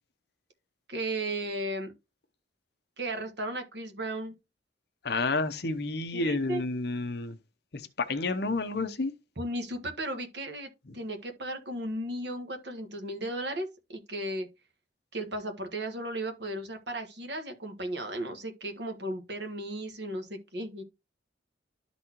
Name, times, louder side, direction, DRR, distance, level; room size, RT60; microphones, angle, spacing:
voice 1, 0.9-1.9 3.0-4.3 6.1-6.6 9.4-14.5 15.1-20.8, right 1 dB, 60° right, 1.4 m, -35 dB
voice 2, 5.0-7.4 7.7-9.1, left 3 dB, 55° left, 0.8 m, -30 dB
12.0 x 4.1 x 2.9 m
head